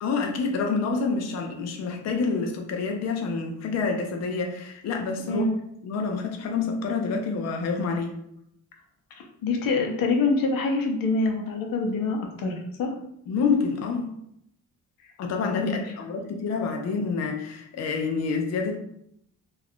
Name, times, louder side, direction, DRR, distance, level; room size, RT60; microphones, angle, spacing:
voice 1, 0.0-5.4 5.8-8.2 9.8-9.9 13.3-14.1 15.2-18.8, left 4 dB, 50° left, 2 dB, 0.4 m, -27 dB
voice 2, 9.4-12.9 15.5-15.8, left 3 dB, 90° left, 2 dB, 0.7 m, -25 dB
2.4 x 2.3 x 3.5 m, 0.73 s
wide cardioid pair, 140°, 33 cm